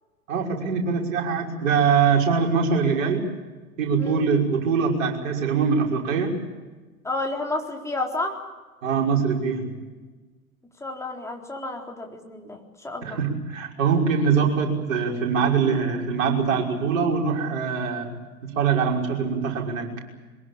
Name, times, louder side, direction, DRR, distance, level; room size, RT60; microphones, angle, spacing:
voice 1, 0.3-3.3 3.8-6.4 8.8-9.7 13.0-18.1 18.4-19.9, right 6 dB, 60° right, 0 dB, 5.9 m, -23 dB
voice 2, 7.0-8.4 10.8-13.2, left 2 dB, 5° left, 1 dB, 4.0 m, -31 dB
23.5 x 21.5 x 8.8 m, 1.3 s
figure-of-eight pair, 95°, 44 cm